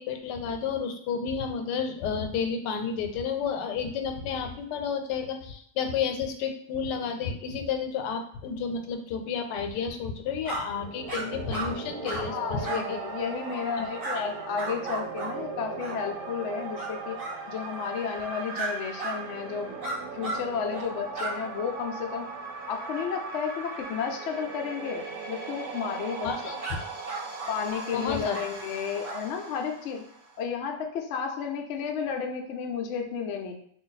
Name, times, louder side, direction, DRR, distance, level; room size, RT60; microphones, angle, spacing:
voice 1, 0.0-13.0 14.2-14.3 26.2-26.8 27.9-28.4, left 6 dB, 85° left, 6 dB, 1.2 m, -31 dB
sound 1, 10.4-10.6 11.1-11.2 11.5-11.7 12.0-12.2 12.6-12.8 13.5-13.6 14.0-14.2 14.5-15.3 15.8-16.0 16.8-16.9 17.1-17.4 18.5-18.7 19.0-19.2 19.8-20.4 20.7-20.9 21.1-21.3 26.6-26.8 27.1-27.8 28.3-28.5 29.0-29.2, right 3 dB, 50° right, 0.4 m, -34 dB
sound 2, 10.6-30.4, right 4 dB, 65° right, 0.9 m, -39 dB
voice 2, 12.2-19.8 20.1-22.3 22.7-26.5 27.5-30.0 30.4-33.5, left 6 dB, 70° left, 3 dB, 0.6 m, -32 dB
3.2 x 2.5 x 3.9 m, 0.64 s
omnidirectional pair, 1.8 m